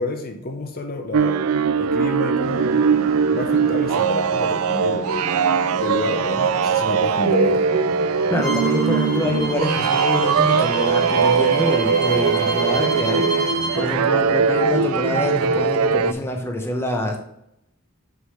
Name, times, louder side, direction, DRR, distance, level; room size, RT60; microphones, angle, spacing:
voice 1, 0.0-1.5 1.8-5.4 5.8-7.8, left 2 dB, 45° left, 5 dB, 0.7 m, -29 dB
sound 1, 1.1-16.1, right 6 dB, 80° right, 0.4 m, -20 dB
sound 2, 2.4-15.7, right 2 dB, 65° right, 1.3 m, -35 dB
voice 2, 8.3-13.2 13.7-17.2, left 1 dB, 10° left, 2 dB, 0.8 m, -25 dB
Bowed string instrument, 8.4-13.8, equal, 45° right, 2.4 m, -29 dB
5.9 x 3.9 x 5.5 m, 0.80 s
head